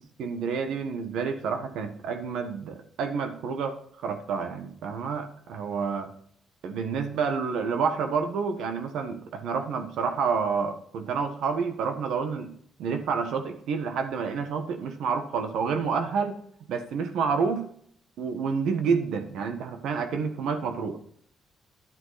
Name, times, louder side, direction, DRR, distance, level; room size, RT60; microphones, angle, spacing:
voice 1, 0.2-6.1 6.6-12.5 12.8-16.4 16.7-17.7 18.2-21.0, right 5 dB, 80° right, 7 dB, 1.4 m, -29 dB
11.0 x 9.6 x 4.1 m, 0.63 s
cardioid pair, 120°, 0 cm